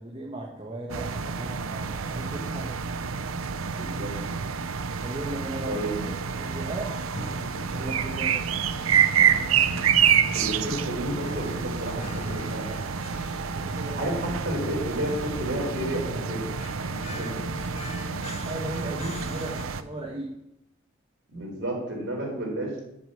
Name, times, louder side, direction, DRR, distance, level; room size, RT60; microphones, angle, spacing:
voice 1, 0.0-2.7 5.0-5.7 6.1-6.9 7.7-8.5 13.5-14.3 16.8-17.5 18.1-20.3, right 1 dB, 25° right, -2 dB, 1.5 m, -37 dB
sound 1, 0.9-19.8, right 7 dB, 90° right, 0.7 m, -28 dB
voice 2, 3.7-4.2 5.7-6.0 10.3-13.0 14.0-16.5 16.8-17.3 21.3-22.8, right 1 dB, 55° right, -2 dB, 4.5 m, -31 dB
sound 2, 7.1-19.6, left 2 dB, 30° left, 0.7 m, -42 dB
8.6 x 7.4 x 8.6 m, 0.84 s
head